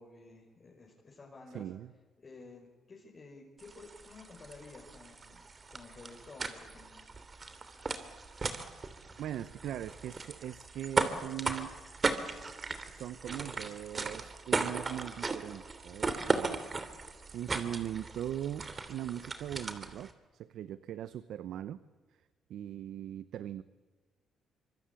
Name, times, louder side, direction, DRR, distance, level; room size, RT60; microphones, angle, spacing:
voice 1, 0.0-1.7 2.2-5.4 5.7-7.1, left 3 dB, 35° left, -2 dB, 5.6 m, -52 dB
voice 2, 1.5-1.9 9.2-11.8 12.9-16.6 17.3-21.8 22.5-23.6, right 11 dB, 75° right, 14 dB, 0.8 m, -40 dB
sound 1, 3.6-20.1, right 4 dB, 35° right, 3.0 m, -37 dB
26.0 x 24.5 x 8.5 m, 1.4 s
cardioid pair, 90°, 0 cm